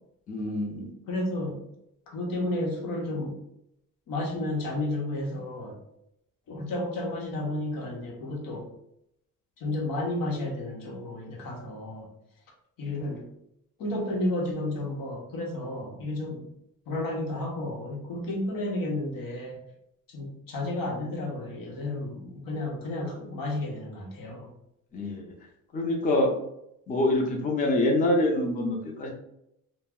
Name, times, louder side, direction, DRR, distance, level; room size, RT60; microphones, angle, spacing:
voice 1, 0.3-0.9 24.9-25.3 25.7-26.3 26.9-29.1, left 1 dB, 25° left, 0 dB, 0.4 m, -25 dB
voice 2, 1.1-1.6 2.1-3.4 4.1-5.8 6.5-8.7 9.6-12.1 12.8-13.2 13.8-16.4 16.9-19.6 20.1-24.5, left 1 dB, 85° left, 0 dB, 0.8 m, -32 dB
2.4 x 2.0 x 3.5 m, 0.79 s
cardioid pair, 145°, 33 cm